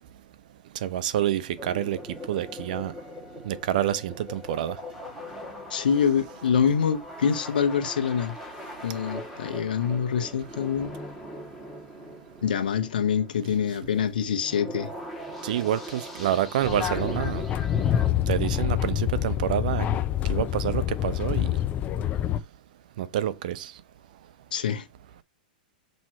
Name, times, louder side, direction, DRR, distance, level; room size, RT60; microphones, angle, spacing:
voice 1, 0.8-2.0 2.3-2.9 3.4-4.8 15.4-17.4 18.3-19.9 20.3-21.5 23.0-23.7, right 11 dB, 65° right, 0.6 m, -27 dB
sound 1, 1.6-18.1, equal, ahead, 2.3 m, -40 dB
voice 2, 5.7-8.4 8.8-10.9 12.4-14.9 24.5-24.9, left 7 dB, 80° left, 1.0 m, -25 dB
sound 2, 16.6-22.4, left 11 dB, 30° left, 0.5 m, -26 dB
7.5 x 3.1 x 4.3 m
hypercardioid pair, 115°, 5 cm